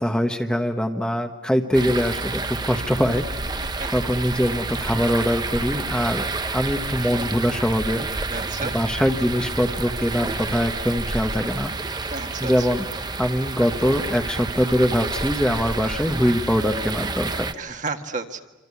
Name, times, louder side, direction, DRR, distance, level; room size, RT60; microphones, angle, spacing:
voice 1, 0.0-3.2 3.9-6.3 6.5-8.1 8.7-11.7 12.4-12.8 13.2-17.5, equal, 5° left, 4 dB, 1.1 m, -23 dB
sound 1, 1.7-17.5, right 3 dB, 20° right, 0.9 m, -29 dB
voice 2, 7.0-7.5 8.3-8.8 12.1-12.7 17.5-18.4, right 4 dB, 40° right, 5 dB, 1.8 m, -32 dB
26.5 x 26.5 x 8.4 m, 1.1 s
head